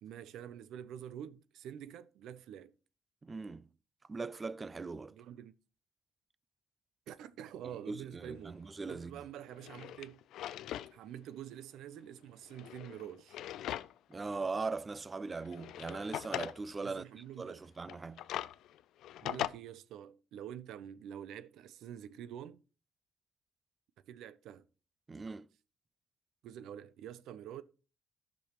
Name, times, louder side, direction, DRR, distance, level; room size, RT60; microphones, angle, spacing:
voice 1, 0.0-2.7 5.1-5.5 7.1-8.6 8.9-10.2 10.9-13.4 16.8-17.6 19.2-22.6 24.1-24.6 26.4-27.6, right 10 dB, 85° right, 0.6 m, -47 dB
voice 2, 3.2-3.7 4.1-5.1 7.9-9.1 14.1-18.2 25.1-25.5, right 4 dB, 30° right, 0.4 m, -40 dB
Drawer open or close, 8.9-9.0 9.5-10.9 11.3-11.4 12.4-14.1 14.5-14.6 15.4-16.6 17.8-19.5, left 12 dB, 85° left, 0.4 m, -41 dB
13.0 x 6.2 x 3.0 m
cardioid pair, 90°, 0 cm